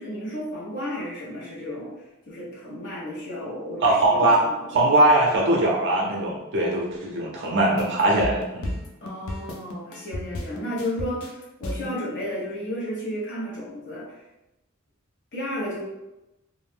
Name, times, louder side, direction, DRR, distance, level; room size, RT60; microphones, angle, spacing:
voice 1, 0.0-1.9 2.3-4.9 9.0-14.2 15.3-15.8, equal, 55° left, -5 dB, 0.9 m, -33 dB
voice 2, 3.8-4.4 4.7-8.7, right 1 dB, 55° right, -3 dB, 0.5 m, -21 dB
sound 1, 7.8-12.0, left 1 dB, 75° left, 0.5 m, -33 dB
2.5 x 2.0 x 3.2 m, 0.97 s
head